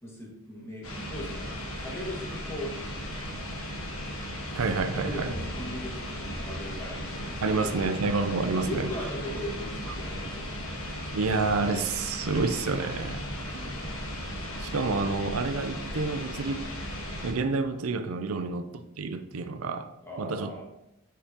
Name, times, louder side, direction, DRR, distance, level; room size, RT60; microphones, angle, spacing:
voice 1, 0.0-1.5 1.8-2.7 5.0-8.0 8.4-10.8 13.4-13.9 18.3-18.5 20.0-20.6, equal, 10° left, -4 dB, 1.7 m, -39 dB
sound 1, 0.8-17.3, equal, 80° left, 1.5 m, -36 dB
voice 2, 4.5-5.3 7.4-8.9 11.1-13.2 14.6-16.6 17.2-18.7 19.0-19.9 20.2-20.6, right 3 dB, 80° right, 9 dB, 0.5 m, -28 dB
8.4 x 5.5 x 2.9 m, 0.86 s
head